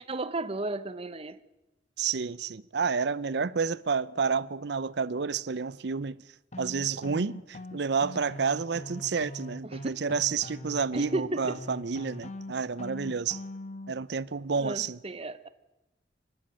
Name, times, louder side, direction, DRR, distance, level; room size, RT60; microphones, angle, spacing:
voice 1, 0.1-1.4 9.6-9.8 10.9-11.6 14.6-15.5, right 2 dB, 30° right, 0.8 m, -33 dB
voice 2, 2.0-6.2 6.6-13.4 13.9-15.0, right 5 dB, 65° right, 0.6 m, -30 dB
sound 1, 6.5-13.9, left 1 dB, 40° left, 1.1 m, -42 dB
25.0 x 12.0 x 8.8 m
head